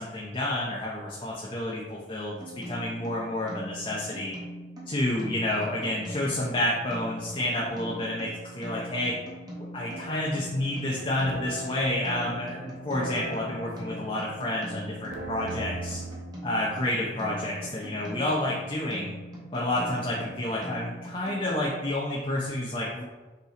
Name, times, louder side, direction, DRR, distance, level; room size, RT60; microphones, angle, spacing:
voice 1, 0.0-2.4 2.7-4.3 4.9-9.1 9.7-16.0 16.4-19.1 19.5-23.0, left 1 dB, 30° left, -5 dB, 0.9 m, -29 dB
sound 1, 2.4-21.9, right 1 dB, 25° right, 1.6 m, -42 dB
sound 2, 9.9-16.2, right 2 dB, 85° right, 1.2 m, -40 dB
5.6 x 4.9 x 3.8 m, 1.2 s
head